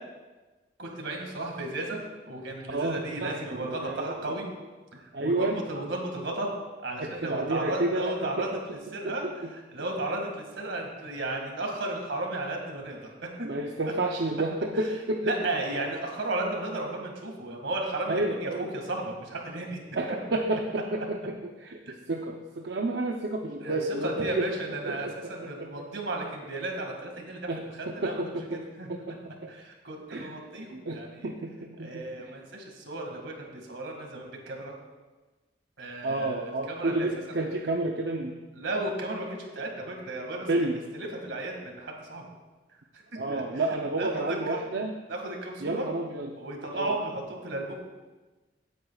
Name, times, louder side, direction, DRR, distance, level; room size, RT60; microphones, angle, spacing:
voice 1, 0.8-2.0 2.3-4.5 4.9-6.5 6.8-9.2 9.5-13.5 13.8-13.9 15.2-19.8 20.1-20.2 21.9-22.0 23.6-27.5 27.8-28.9 29.5-31.3 31.8-34.7 35.8-37.1 38.5-40.5 41.0-42.2 43.1-43.4 44.0-44.7 45.1-45.9 46.4-47.8, right 2 dB, 85° right, 1 dB, 2.1 m, -34 dB
voice 2, 2.7-4.3 5.1-5.6 7.0-8.5 9.0-9.2 9.4-9.5 13.4-15.4 18.1-18.7 19.9-24.5 24.8-25.8 27.5-29.5 30.1-30.3 30.7-32.3 36.0-38.3 40.5-40.8 43.2-44.9 45.6-46.3 46.7-47.0, right 2 dB, 70° right, 2 dB, 0.7 m, -31 dB
16.5 x 9.2 x 2.4 m, 1.2 s
head